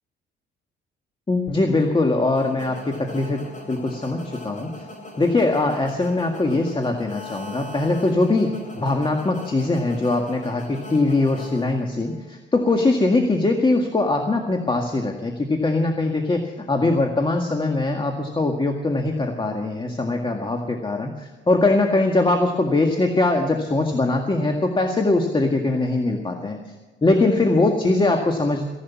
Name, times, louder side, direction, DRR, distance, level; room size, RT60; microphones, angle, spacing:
voice 1, 1.3-3.4 3.7-4.7 5.2-26.6 27.0-28.6, left 2 dB, 25° left, 3 dB, 1.9 m, -21 dB
sound 1, 1.8-12.2, left 1 dB, 40° left, 4.6 m, -40 dB
16.0 x 11.5 x 7.1 m, 1.2 s
cardioid pair, 90°, 20 cm